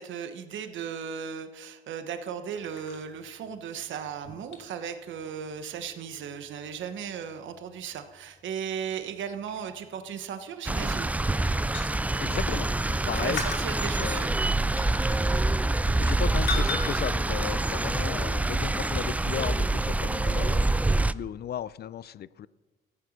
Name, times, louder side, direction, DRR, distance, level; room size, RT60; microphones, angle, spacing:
voice 1, 0.0-11.2 13.1-14.3, right 7 dB, 75° right, 9 dB, 1.1 m, -36 dB
sound 1, 2.5-12.9 13.3-16.2 16.5-17.2, left 5 dB, 70° left, 2.6 m, -41 dB
sound 2, 10.7-21.1, right 2 dB, 5° right, 0.3 m, -26 dB
voice 2, 12.2-13.4 14.0-14.2 16.0-22.5, left 10 dB, 55° left, 19 dB, 0.5 m, -35 dB
14.5 x 8.9 x 6.4 m, 1.2 s
cardioid pair, 90°, 20 cm